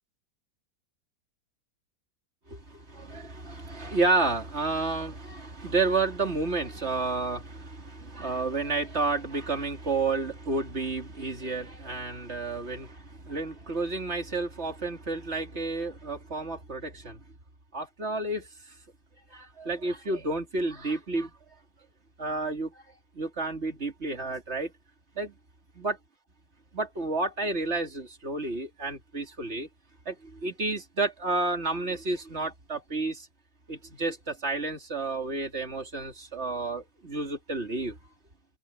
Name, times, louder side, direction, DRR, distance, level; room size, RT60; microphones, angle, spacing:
voice 1, 2.5-17.2 17.7-18.5 19.3-21.3 22.2-22.7 23.1-24.7 25.1-25.3 25.7-26.0 26.7-29.7 30.0-33.3 33.7-38.0, right 3 dB, 35° right, 3.3 m, -31 dB
omnidirectional pair, 2.0 m